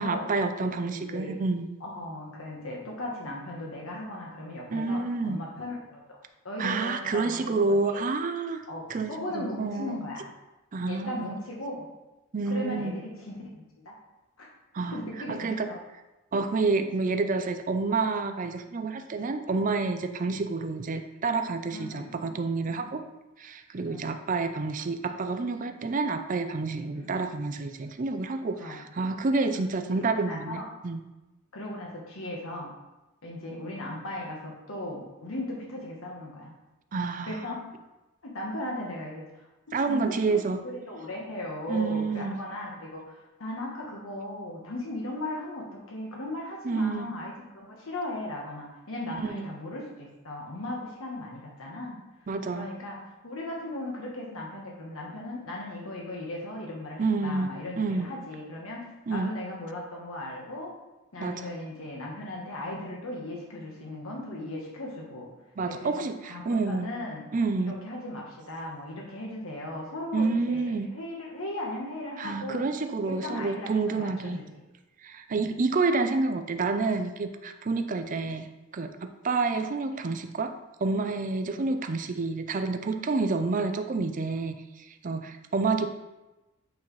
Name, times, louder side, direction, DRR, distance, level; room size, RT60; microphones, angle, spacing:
voice 1, 0.0-1.7 4.7-5.4 6.6-8.6 8.9-10.0 10.7-11.3 12.3-12.9 14.7-15.0 15.4-15.7 16.3-23.0 23.4-31.0 36.9-37.3 39.7-40.6 41.7-42.4 46.6-47.1 49.2-49.5 52.3-52.7 57.0-58.1 59.1-59.3 61.2-61.4 65.6-66.9 67.3-67.8 70.1-70.9 72.2-74.4 75.0-84.6 85.0-85.9, right 3 dB, 40° right, 8 dB, 0.5 m, -29 dB
voice 2, 0.6-1.4 1.8-6.2 6.4-8.0 8.7-10.3 10.9-11.9 12.5-14.0 14.4-14.5 14.9-15.8 20.3-20.4 21.7-22.3 22.6-23.0 23.8-24.2 26.9-27.1 28.6-28.8 30.0-30.7 31.5-32.7 33.2-36.5 37.3-37.6 38.2-52.0 52.5-53.0 53.2-60.7 61.1-65.3 65.6-67.3 67.6-72.7 73.0-74.4 75.3-75.5 78.2-78.3 81.4-81.7, left 1 dB, 85° left, -2 dB, 1.2 m, -37 dB
8.3 x 4.1 x 3.2 m, 1.0 s
head